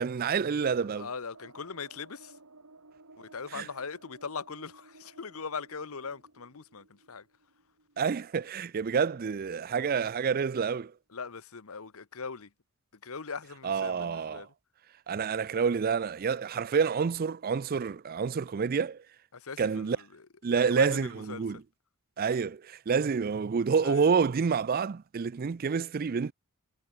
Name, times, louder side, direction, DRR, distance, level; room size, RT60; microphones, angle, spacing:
voice 1, 0.0-1.1 3.5-3.6 8.0-10.9 13.6-14.5 15.1-19.0 19.6-20.0 20.4-21.6 22.2-26.3, right 6 dB, 40° right, 0.4 m, -28 dB
voice 2, 0.9-2.4 3.2-7.3 11.1-12.5 13.0-14.5 19.3-20.3 20.5-21.6 23.8-24.1, left 5 dB, 70° left, 1.0 m, -40 dB
sound 1, 1.3-9.8 10.2-10.3 10.5-10.6, right 2 dB, 90° right, 4.3 m, -57 dB
head